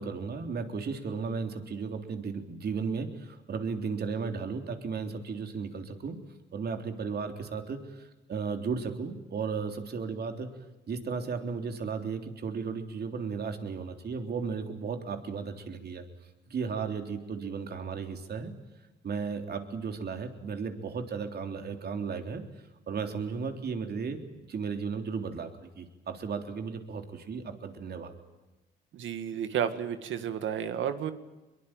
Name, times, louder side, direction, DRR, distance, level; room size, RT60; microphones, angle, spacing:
voice 1, 0.0-6.2 6.5-10.5 10.9-16.0 16.5-18.5 19.0-22.4 22.9-24.2 24.5-28.1, right 5 dB, 55° right, 6 dB, 3.5 m, -35 dB
voice 2, 28.9-31.1, right 9 dB, 75° right, 10 dB, 2.0 m, -31 dB
24.0 x 22.5 x 9.1 m, 1.1 s
cardioid pair, 90°, 20 cm